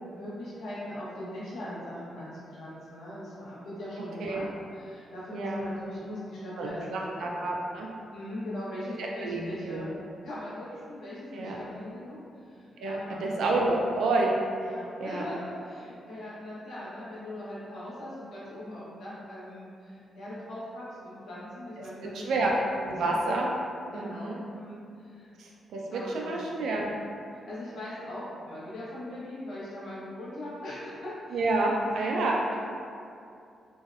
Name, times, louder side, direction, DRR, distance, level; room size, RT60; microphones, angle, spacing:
voice 1, 0.2-7.6 8.1-9.9 10.2-12.2 12.5-13.4 14.6-22.4 22.9-23.0 23.9-25.3 25.9-26.5 27.3-31.6 32.0-32.5, left 1 dB, 75° left, -9 dB, 0.9 m, -40 dB
voice 2, 5.3-5.7 6.6-7.9 9.0-9.8 11.3-11.6 12.8-14.3 15.0-15.2 22.1-22.5 22.8-23.5 23.9-24.4 25.4-26.9 31.3-32.4, right 2 dB, 80° right, -1 dB, 0.3 m, -29 dB
2.6 x 2.0 x 2.3 m, 2.5 s
cardioid pair, 130°, 0 cm